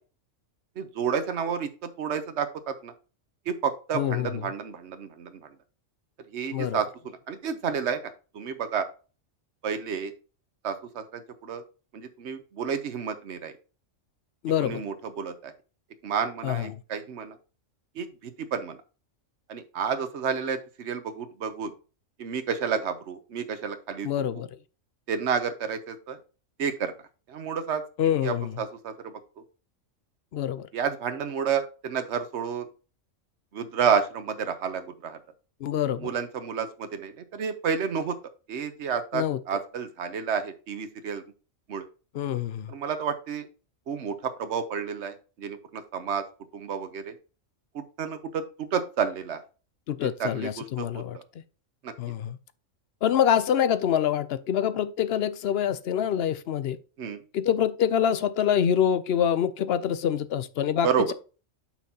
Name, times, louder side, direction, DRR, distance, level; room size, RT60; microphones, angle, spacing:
voice 1, 0.8-2.9 3.5-5.5 6.3-6.9 7.3-8.0 8.3-8.9 9.6-10.1 10.6-11.6 11.9-13.5 14.6-15.5 16.0-17.4 18.0-18.8 19.5-21.7 22.2-24.1 25.1-26.2 26.6-26.9 27.3-27.8 28.2-29.1 30.7-32.7 33.5-35.2 36.0-38.2 38.5-41.2 41.7-41.9 42.7-43.5 43.9-46.2 46.5-47.1 47.7-49.4 50.0-51.2 51.8-51.9 57.0-57.2 60.8-61.1, right 6 dB, 60° right, 1.2 m, -30 dB
voice 2, 3.9-4.3 6.5-6.8 14.4-14.8 16.4-16.7 24.0-24.5 28.0-28.6 30.3-30.7 35.6-36.1 39.1-39.4 42.1-42.7 49.9-51.2 52.0-52.4 53.0-56.8 57.3-61.1, left 9 dB, 60° left, 0.7 m, -26 dB
9.0 x 5.8 x 2.8 m
omnidirectional pair, 1.4 m